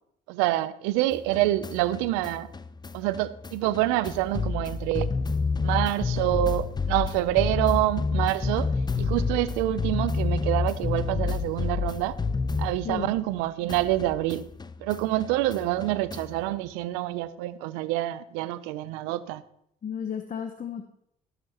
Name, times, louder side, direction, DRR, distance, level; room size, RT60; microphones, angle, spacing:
voice 1, 0.3-2.5 2.9-5.1 5.6-8.7 9.0-12.1 12.6-14.5 14.8-19.4, right 15 dB, 85° right, 15 dB, 0.6 m, -27 dB
sound 1, 1.1-13.4 13.7-16.5, left 4 dB, 20° left, 0.6 m, -30 dB
voice 2, 12.8-13.2 19.8-20.9, left 7 dB, 40° left, 7 dB, 0.9 m, -33 dB
19.5 x 6.9 x 3.0 m, 0.74 s
hypercardioid pair, 55°, 20 cm